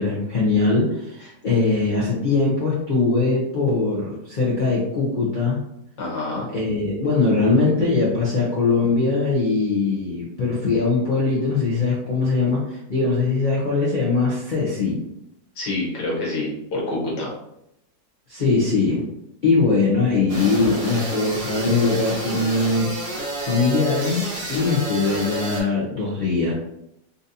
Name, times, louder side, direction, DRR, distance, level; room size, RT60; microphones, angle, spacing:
voice 1, 0.0-5.6 6.5-15.0 18.3-19.0 19.4-22.9 23.4-26.5, left 3 dB, 45° left, -6 dB, 0.7 m, -21 dB
voice 2, 6.0-6.5 15.6-17.3, left 2 dB, 90° left, -4 dB, 1.7 m, -27 dB
sound 1, 20.3-25.6, right 1 dB, 50° right, 1.5 m, -30 dB
4.0 x 2.6 x 2.6 m, 0.79 s
omnidirectional pair, 1.8 m